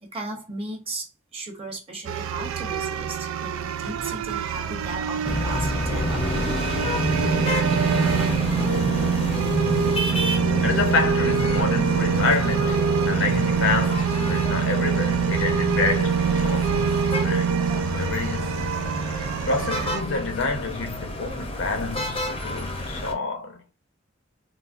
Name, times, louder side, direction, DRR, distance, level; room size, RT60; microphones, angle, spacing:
voice 1, 0.0-6.8, right 2 dB, 30° right, 1.0 m, -36 dB
sound 1, 2.1-20.0, right 7 dB, 85° right, 0.4 m, -25 dB
sound 2, 5.2-23.1, left 1 dB, 30° left, 0.6 m, -29 dB
voice 2, 10.3-17.5 17.9-18.7 19.1-23.7, left 3 dB, 65° left, 0.7 m, -28 dB
4.0 x 2.0 x 2.4 m
head